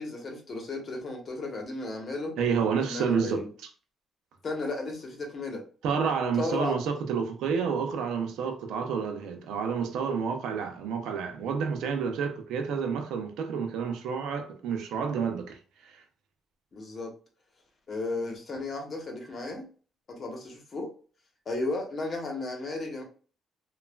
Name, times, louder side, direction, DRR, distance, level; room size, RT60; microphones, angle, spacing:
voice 1, 0.0-2.4 2.8-3.5 4.4-5.6 6.4-6.8 16.7-17.1 17.9-19.7 20.1-20.9 21.5-23.0, left 2 dB, 45° left, 1.0 m, -34 dB
voice 2, 2.4-3.4 5.8-15.6, right 6 dB, 85° right, 0.6 m, -29 dB
3.1 x 2.3 x 2.2 m
cardioid pair, 90°, 0 cm